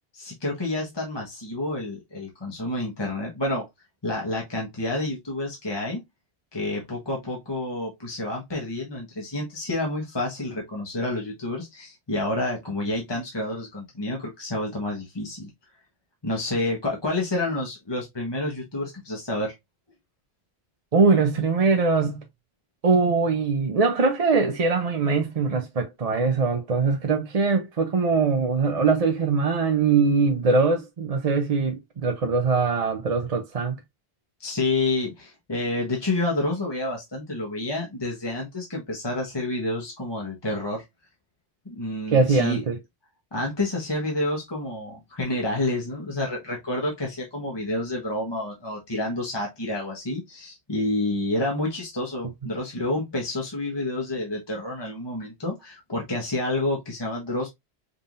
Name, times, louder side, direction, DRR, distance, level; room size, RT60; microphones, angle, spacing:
voice 1, 0.1-3.6 4.0-6.0 6.5-15.5 16.2-19.5 34.4-40.8 41.6-42.6 43.3-57.5, left 2 dB, 25° left, 1.4 m, -29 dB
voice 2, 20.9-22.2 22.8-33.8 42.1-42.8, right 4 dB, 45° right, 0.6 m, -22 dB
5.4 x 3.7 x 2.6 m
omnidirectional pair, 1.0 m